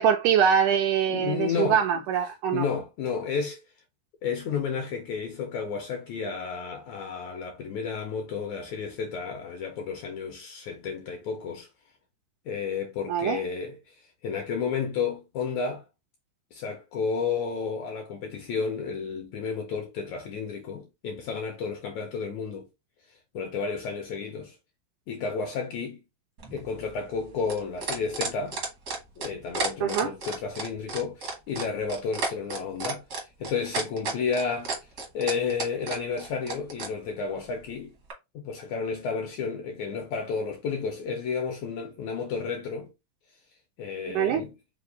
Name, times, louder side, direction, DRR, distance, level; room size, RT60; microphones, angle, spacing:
voice 1, 0.0-2.7 13.1-13.4 29.8-30.1 44.2-44.4, right 8 dB, 80° right, 1.8 m, -23 dB
voice 2, 1.1-2.0 2.5-3.6 4.2-11.7 12.4-15.9 16.5-22.7 23.1-24.6 25.1-26.0 26.5-28.6 29.2-34.9 35.1-38.0 38.3-42.9 43.8-44.5, left 5 dB, 80° left, 1.7 m, -32 dB
sound 1, 26.4-36.9 38.1-38.2, right 4 dB, 65° right, 0.9 m, -32 dB
5.4 x 2.1 x 3.7 m
omnidirectional pair, 3.9 m